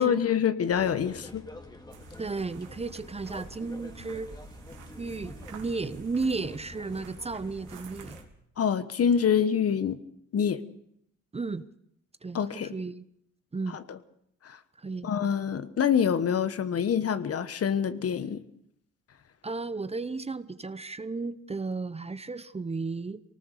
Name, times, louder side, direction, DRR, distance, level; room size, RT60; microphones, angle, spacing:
voice 1, 0.0-1.5 8.6-10.0 10.3-10.6 12.3-12.7 13.9-14.0 14.4-14.6 15.0-18.4, left 8 dB, 50° left, 13 dB, 1.3 m, -26 dB
sound 1, 0.7-8.3, left 1 dB, 15° left, 2.4 m, -47 dB
sound 2, 1.9-8.2, right 5 dB, 80° right, 3.0 m, -50 dB
voice 2, 2.2-4.3 5.0-8.2 11.3-11.6 12.2-13.0 13.5-13.8 14.8-15.1 19.4-23.2, right 3 dB, 20° right, 14 dB, 0.9 m, -34 dB
24.5 x 19.0 x 6.8 m, 0.72 s
cardioid pair, 90°, 30 cm